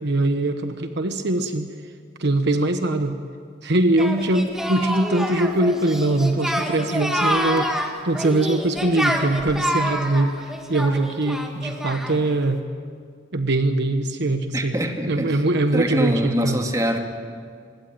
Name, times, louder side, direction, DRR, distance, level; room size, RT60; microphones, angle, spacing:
voice 1, 0.0-1.7 2.2-3.2 3.6-12.6 13.3-14.7 15.1-16.6, right 2 dB, 60° right, 8 dB, 1.2 m, -22 dB
Singing, 4.0-12.3, equal, ahead, 2.4 m, -27 dB
voice 2, 14.5-15.4 15.7-17.0, equal, 20° right, 3 dB, 2.3 m, -24 dB
25.0 x 21.5 x 9.1 m, 2.1 s
head